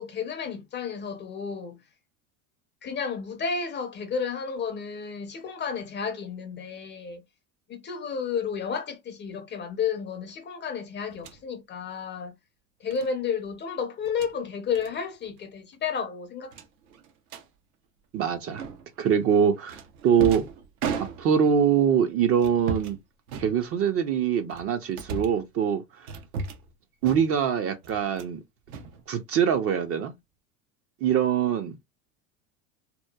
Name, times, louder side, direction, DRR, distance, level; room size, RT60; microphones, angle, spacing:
voice 1, 0.0-1.8 2.8-7.2 7.7-12.3 12.8-16.5, left 6 dB, 25° left, 0.5 m, -32 dB
sound 1, 11.1-11.4 12.9-13.1 14.0-14.3 14.7-14.9 15.2-15.4 15.7-15.8 16.5-17.5 18.6-19.0 19.7-21.6 22.4-23.0 23.3-24.0 24.5-25.5 26.1-26.7 27.0-27.5 27.8-28.4 28.7-29.5, right 5 dB, 80° right, 0.7 m, -36 dB
voice 2, 18.1-18.6 19.0-20.5 21.0-23.0 23.3-26.1 27.0-28.4 29.1-30.1 31.0-31.8, right 8 dB, 35° right, 0.4 m, -24 dB
2.9 x 2.1 x 2.2 m
hypercardioid pair, 90°, 42 cm